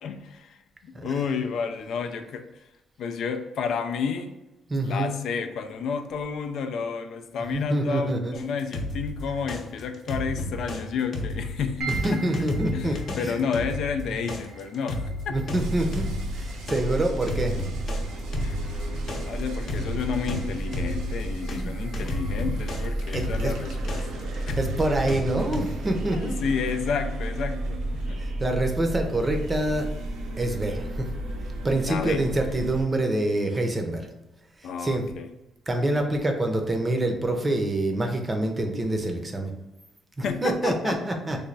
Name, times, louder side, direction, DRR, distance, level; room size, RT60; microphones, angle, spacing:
voice 1, 0.0-2.5 3.0-4.3 4.8-12.2 12.7-15.4 18.4-24.6 26.1-28.2 31.8-32.2 34.6-35.3 40.2-41.0, left 6 dB, 75° left, 7 dB, 0.3 m, -31 dB
voice 2, 4.7-5.1 7.5-8.3 12.0-13.4 14.1-14.3 15.3-16.1 16.3-17.5 21.6-21.7 23.1-23.5 24.3-26.3 28.2-29.9 30.4-31.1 31.6-34.1 34.8-35.1 35.7-39.5 40.2-41.4, right 1 dB, 25° right, 3 dB, 0.6 m, -26 dB
sound 1, 8.3-10.8 11.1-21.6 21.9-25.6, left 2 dB, 55° left, 0.7 m, -33 dB
sound 2, 11.8-26.3, right 5 dB, 55° right, 0.8 m, -46 dB
sound 3, 15.6-32.8, right 1 dB, 90° right, 0.5 m, -32 dB
3.2 x 2.2 x 3.9 m, 1.0 s
cardioid pair, 90°, 0 cm